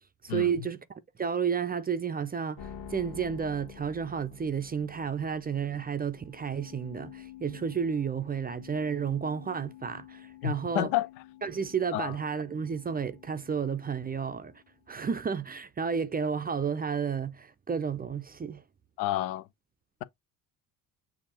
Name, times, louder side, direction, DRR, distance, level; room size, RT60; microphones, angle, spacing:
voice 1, 0.2-0.8 1.2-10.9 11.4-14.5 14.9-18.6, right 6 dB, 20° right, 0.4 m, -31 dB
sound 1, 2.6-14.9, left 9 dB, 45° left, 1.4 m, -50 dB
voice 2, 10.4-11.1 11.9-12.1 19.0-19.5, left 14 dB, 85° left, 0.6 m, -29 dB
6.8 x 2.5 x 2.8 m
hypercardioid pair, 65°, 49 cm